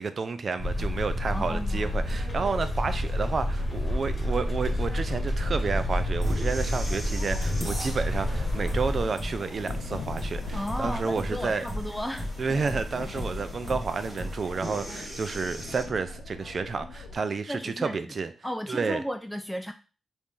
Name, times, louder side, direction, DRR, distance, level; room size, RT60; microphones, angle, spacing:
voice 1, 0.0-11.7 12.4-18.3 18.7-19.0, right 4 dB, 50° right, 0.5 m, -30 dB
sound 1, 0.6-9.0, left 1 dB, 30° left, 1.6 m, -29 dB
sound 2, 0.8-15.8, equal, 25° right, 2.4 m, -39 dB
voice 2, 1.2-1.9 10.5-12.3 17.4-18.1 18.4-19.7, equal, 5° left, 0.4 m, -34 dB
sound 3, 1.9-17.2, left 3 dB, 75° left, 0.6 m, -39 dB
4.1 x 2.7 x 3.7 m
cardioid pair, 65°, 0 cm